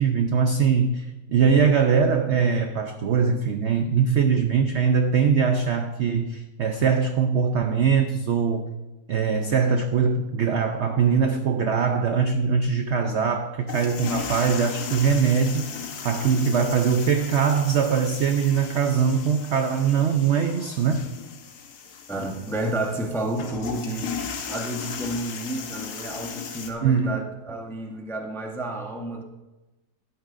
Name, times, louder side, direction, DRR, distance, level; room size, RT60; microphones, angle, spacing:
voice 1, 0.0-8.7 9.1-15.7 16.0-21.1 26.8-27.2, right 6 dB, 80° right, 6 dB, 0.6 m, -22 dB
sound 1, 13.7-26.7, left 6 dB, 65° left, 1.4 m, -36 dB
voice 2, 22.1-24.2 24.5-29.2, right 1 dB, 5° left, 2 dB, 0.4 m, -31 dB
12.5 x 9.5 x 2.5 m, 1.1 s
omnidirectional pair, 1.9 m